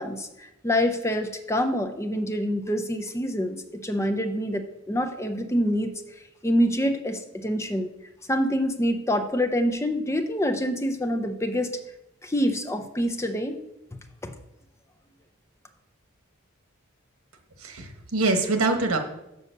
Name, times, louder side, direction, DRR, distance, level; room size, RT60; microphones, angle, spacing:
voice 1, 0.0-5.9 6.4-7.9 8.3-11.8 12.2-13.6 14.2-14.3, equal, 15° left, 6 dB, 0.6 m, -26 dB
voice 2, 17.6-19.0, right 3 dB, 90° right, 5 dB, 1.3 m, -24 dB
6.9 x 5.3 x 6.4 m, 0.88 s
head